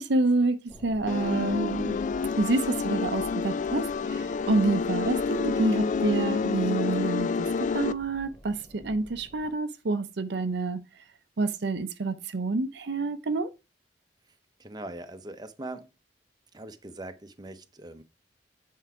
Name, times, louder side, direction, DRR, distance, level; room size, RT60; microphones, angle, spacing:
voice 1, 0.0-2.0 2.4-10.8 11.4-13.5, right 3 dB, 65° right, 0.6 m, -28 dB
sound 1, 0.7-9.6, equal, 20° left, 0.9 m, -48 dB
sound 2, 1.1-7.9, left 5 dB, 45° left, 0.3 m, -28 dB
voice 2, 14.6-15.9 16.5-18.0, right 2 dB, 25° right, 0.8 m, -41 dB
8.1 x 4.7 x 4.7 m
head